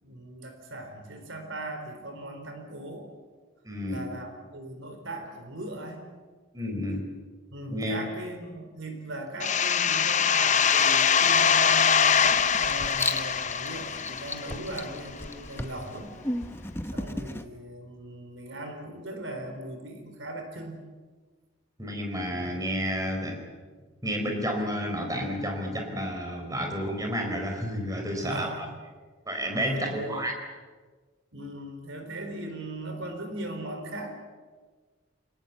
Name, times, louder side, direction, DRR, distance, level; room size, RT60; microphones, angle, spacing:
voice 1, 0.0-3.1 3.9-6.1 7.5-12.2 12.6-16.1 16.9-20.8 28.0-28.8 29.6-30.3 31.3-34.2, right 1 dB, 70° right, 5 dB, 4.2 m, -39 dB
voice 2, 3.6-4.0 6.5-7.0 7.7-8.0 21.8-23.4 24.0-28.5 29.3-30.3, equal, 15° right, 3 dB, 4.4 m, -30 dB
sound 1, 9.4-14.9, left 7 dB, 35° left, 0.8 m, -23 dB
Writing, 12.3-17.4, left 2 dB, 10° left, 1.0 m, -35 dB
28.0 x 19.0 x 8.3 m, 1.4 s
head